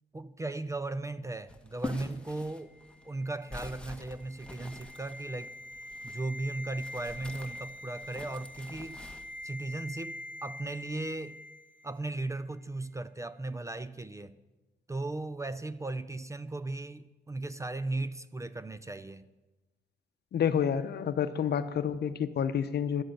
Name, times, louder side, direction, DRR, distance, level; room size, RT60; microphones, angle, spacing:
voice 1, 0.1-2.8 3.0-5.5 6.0-9.0 9.4-11.4 11.8-14.3 14.9-19.3, right 2 dB, 15° right, 0.4 m, -37 dB
sound 1, 1.5-6.2 6.7-9.2, left 2 dB, 5° left, 1.1 m, -45 dB
sound 2, 2.7-12.0 12.2-12.4, left 1 dB, 70° right, 3.4 m, -45 dB
voice 2, 20.3-23.0, left 8 dB, 55° left, 0.8 m, -29 dB
11.5 x 7.8 x 8.6 m
cardioid pair, 90°, 20 cm